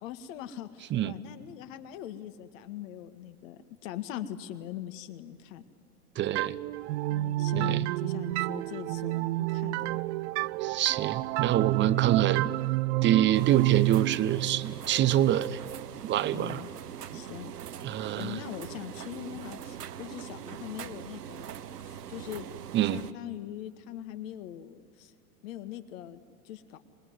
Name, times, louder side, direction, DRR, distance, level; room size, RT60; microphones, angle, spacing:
voice 1, 0.0-5.6 7.1-10.0 16.3-16.7 17.1-17.5 18.2-21.4 21.9-22.5 22.9-25.1 25.4-26.8, left 12 dB, 55° left, 11 dB, 1.9 m, -41 dB
voice 2, 6.2-6.6 7.5-7.8 10.6-12.5 13.0-15.6 16.0-16.6 17.1-17.2 17.8-18.4 22.7-23.0, right 12 dB, 25° right, 15 dB, 0.8 m, -26 dB
sound 1, 6.4-15.9, right 19 dB, 50° right, 0.5 m, -29 dB
sound 2, 13.3-23.1, right 9 dB, 90° right, 0.9 m, -42 dB
26.0 x 20.5 x 9.5 m, 2.2 s
hypercardioid pair, 110°, 46 cm